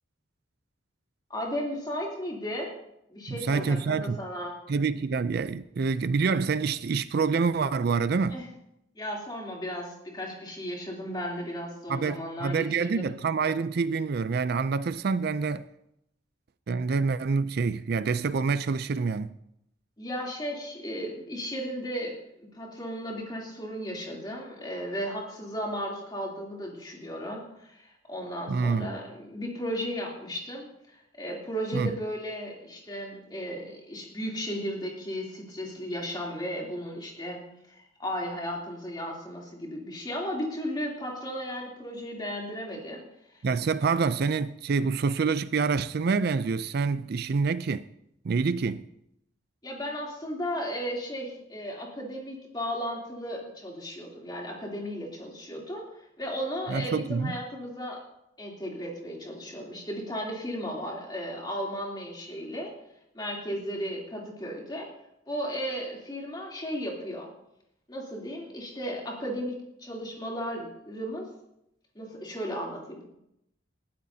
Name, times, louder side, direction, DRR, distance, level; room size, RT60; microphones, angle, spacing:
voice 1, 1.3-2.7 3.1-4.6 8.3-8.5 8.9-13.1 20.0-37.4 37.7-43.0 43.3-43.4 49.6-55.8 56.2-58.0 58.4-62.7 63.1-64.9 65.3-67.3 67.9-69.5 69.8-71.2 71.9-73.0, equal, 20° left, 3.1 m, -35 dB
voice 2, 3.4-4.2 4.7-8.4 11.9-15.6 16.7-19.3 28.5-28.9 31.7-31.9 43.4-47.8 48.2-48.8 56.7-57.4, right 4 dB, 50° right, 0.4 m, -27 dB
20.5 x 12.5 x 2.8 m
head